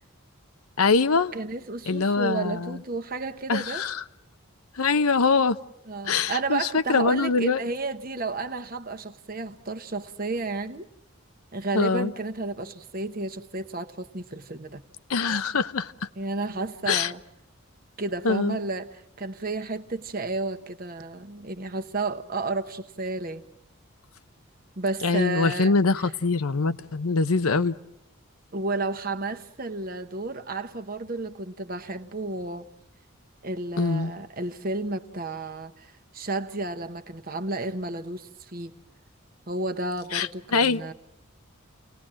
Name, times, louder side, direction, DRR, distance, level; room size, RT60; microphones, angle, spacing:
voice 1, 0.8-1.3 1.9-2.8 3.5-4.0 4.8-5.6 6.0-7.6 11.7-12.1 15.1-15.9 16.9-17.1 18.2-18.6 25.0-27.8 33.8-34.1 40.1-40.9, left 4 dB, 90° left, 0.8 m, -23 dB
voice 2, 1.3-3.8 5.9-10.9 11.5-14.8 16.2-17.2 18.0-23.4 24.8-25.7 28.5-32.7 33.4-38.8 39.5-40.9, right 2 dB, 40° right, 1.1 m, -32 dB
29.5 x 19.0 x 7.6 m
head